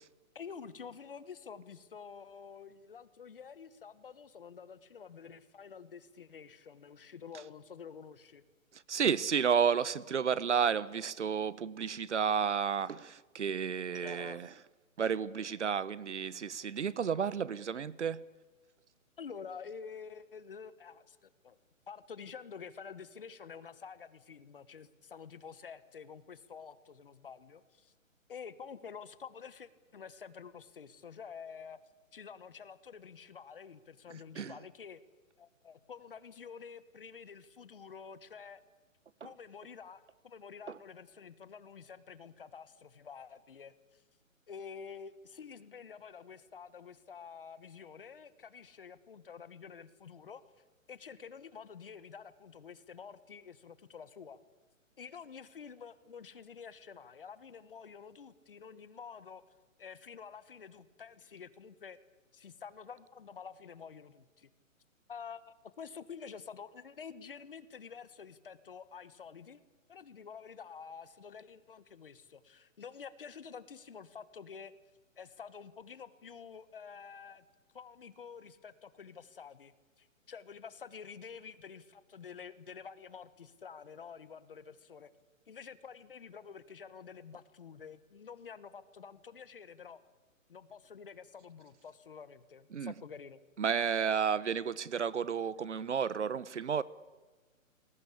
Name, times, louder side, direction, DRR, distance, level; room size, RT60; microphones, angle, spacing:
voice 1, 0.3-8.4 14.0-14.5 19.2-21.6 21.9-27.9 28.3-31.8 32.1-35.0 35.4-38.6 39.2-44.0 44.5-50.4 50.9-54.4 55.0-59.4 59.8-62.0 62.3-64.5 65.1-69.6 69.9-74.7 75.2-77.4 77.7-85.1 85.5-90.0 90.5-93.4, left 6 dB, 40° left, 1.4 m, -49 dB
voice 2, 8.9-14.5 15.0-18.2 34.4-34.6 92.7-92.9 93.6-96.8, right 7 dB, 55° right, 1.0 m, -31 dB
29.0 x 21.0 x 8.5 m
hypercardioid pair, 180°, 41 cm